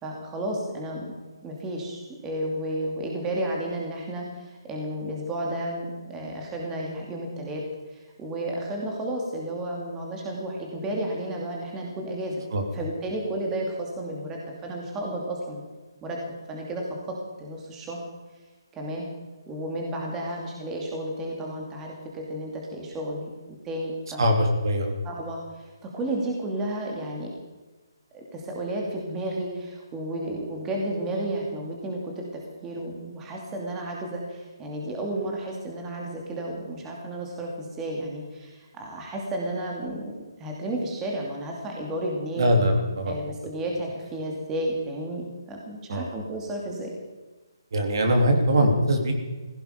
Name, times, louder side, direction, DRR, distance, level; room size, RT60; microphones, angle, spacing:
voice 1, 0.0-1.1 1.4-7.6 7.9-12.4 12.7-15.6 16.0-18.0 18.7-19.1 19.5-23.3 23.6-24.3 25.0-27.3 28.1-40.1 40.4-42.5 43.0-46.9, right 1 dB, 15° right, -1 dB, 2.6 m, -32 dB
voice 2, 24.2-25.0 42.4-43.2 45.9-46.0 47.7-49.1, equal, 60° right, 3 dB, 3.2 m, -22 dB
16.5 x 16.0 x 5.2 m, 1.2 s
hypercardioid pair, 160°, 2 cm